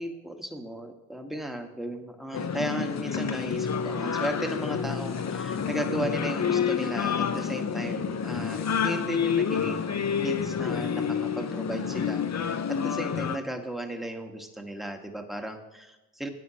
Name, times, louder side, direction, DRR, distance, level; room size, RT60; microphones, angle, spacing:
voice 1, 0.0-16.3, right 1 dB, ahead, 4 dB, 1.3 m, -35 dB
Scottish soldier street singer, 2.3-13.4, left 7 dB, 40° left, 0.7 m, -29 dB
13.0 x 9.2 x 2.9 m, 1.0 s
cardioid pair, 60°, 41 cm